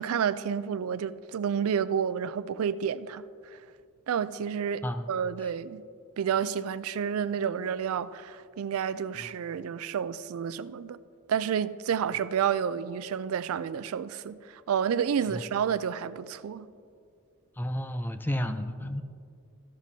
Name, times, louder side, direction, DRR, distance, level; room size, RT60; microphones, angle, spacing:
voice 1, 0.0-3.2 3.5-3.6 4.1-5.8 6.2-11.0 11.3-16.7, right 7 dB, 75° right, 0.4 m, -30 dB
voice 2, 17.6-19.0, equal, 10° left, 0.4 m, -31 dB
13.5 x 11.0 x 2.7 m
head